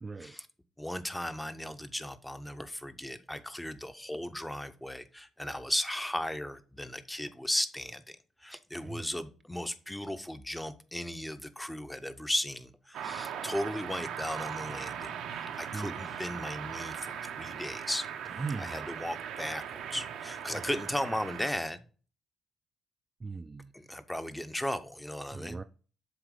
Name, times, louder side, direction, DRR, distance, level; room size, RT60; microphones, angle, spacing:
voice 1, 0.0-0.4 8.7-9.1 15.5-16.2 18.3-18.8 20.5-20.6 23.2-23.7 25.3-25.6, right 4 dB, 30° right, 0.4 m, -40 dB
voice 2, 0.8-18.1 18.6-21.8 23.7-25.6, left 1 dB, 5° left, 0.7 m, -36 dB
sound 1, 12.9-21.5, right 8 dB, 80° right, 0.7 m, -39 dB
7.6 x 2.9 x 4.8 m
cardioid pair, 75°, 0 cm